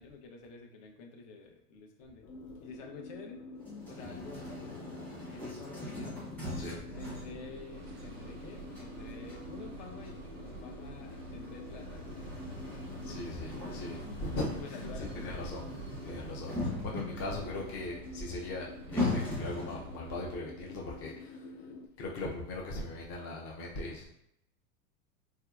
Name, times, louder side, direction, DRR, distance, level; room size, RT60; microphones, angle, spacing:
voice 1, 0.0-2.3 2.6-3.5 3.9-6.2 6.9-12.2 13.1-13.9 14.6-15.5, left 4 dB, 55° left, 2 dB, 0.8 m, -49 dB
sound 1, 2.2-21.9, left 3 dB, 80° left, 0.6 m, -48 dB
sound 2, 3.6-20.0, left 2 dB, 5° left, 0.8 m, -41 dB
sound 3, 6.9-20.4, right 4 dB, 40° right, 0.4 m, -49 dB
voice 2, 13.0-15.6 16.0-21.5 22.0-24.1, left 2 dB, 30° left, -2 dB, 0.5 m, -39 dB
3.3 x 2.7 x 2.3 m, 0.78 s
hypercardioid pair, 115°, 45 cm